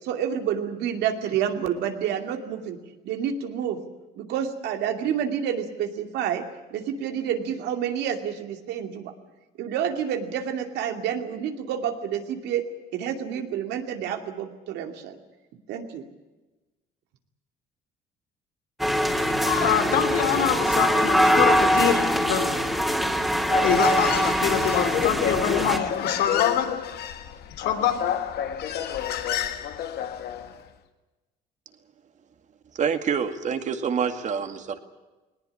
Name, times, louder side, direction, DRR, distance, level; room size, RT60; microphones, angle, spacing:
voice 1, 0.0-2.8 3.0-3.8 4.2-6.4 6.7-9.1 9.6-12.6 12.9-15.2 15.7-16.1, right 9 dB, 80° right, 5 dB, 2.6 m, -29 dB
sound 1, 18.8-25.8, equal, ahead, 2.8 m, -23 dB
voice 2, 19.1-22.6 23.6-26.7 27.6-28.0, left 9 dB, 90° left, 8 dB, 2.8 m, -25 dB
Human voice, 23.4-30.5, left 9 dB, 70° left, 1.8 m, -29 dB
voice 3, 32.8-34.8, right 7 dB, 45° right, 8 dB, 2.1 m, -26 dB
19.5 x 19.0 x 9.9 m, 1.1 s
cardioid pair, 110°, 17 cm